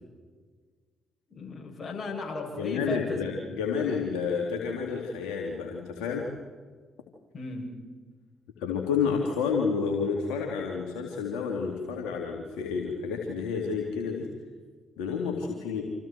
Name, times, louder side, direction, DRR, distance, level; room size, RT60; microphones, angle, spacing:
voice 1, 1.3-3.2 7.3-7.7, left 3 dB, 40° left, 1 dB, 7.8 m, -35 dB
voice 2, 2.6-6.2 8.6-14.3 15.0-15.8, left 5 dB, 75° left, 0 dB, 2.9 m, -30 dB
28.5 x 27.5 x 4.6 m, 1.5 s
hypercardioid pair, 45°, 0 cm